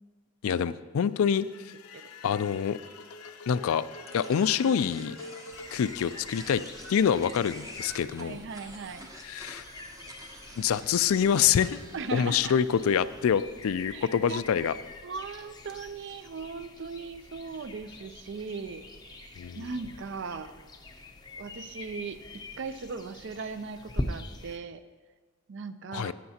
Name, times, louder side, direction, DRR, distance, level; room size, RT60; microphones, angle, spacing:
voice 1, 0.4-1.5 2.2-2.8 3.5-3.9 4.1-5.2 5.7-6.6 6.9-8.4 9.2-9.6 10.6-11.8 12.1-14.7 19.4-19.7 25.9-26.1, left 8 dB, 70° left, 15 dB, 0.3 m, -26 dB
sound 1, 1.1-9.2, left 3 dB, 90° left, 0.7 m, -47 dB
sound 2, 4.1-13.2, right 2 dB, 15° right, 0.7 m, -49 dB
sound 3, 5.5-24.6, left 1 dB, 20° left, 0.6 m, -44 dB
voice 2, 8.2-9.1 11.9-12.6 13.9-14.4 15.0-20.5 21.4-24.8 25.5-26.1, right 4 dB, 55° right, 12 dB, 0.4 m, -38 dB
13.5 x 9.4 x 2.8 m, 1.4 s
head